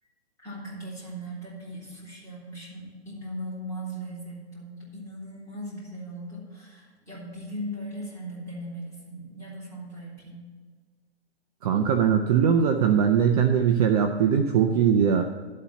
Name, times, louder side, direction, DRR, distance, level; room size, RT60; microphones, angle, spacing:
voice 1, 0.4-10.5, right 1 dB, 10° left, -8 dB, 3.6 m, -38 dB
voice 2, 11.6-15.3, right 7 dB, 35° right, 5 dB, 0.5 m, -21 dB
12.0 x 4.3 x 8.1 m, 1.6 s
hypercardioid pair, 145°, 33 cm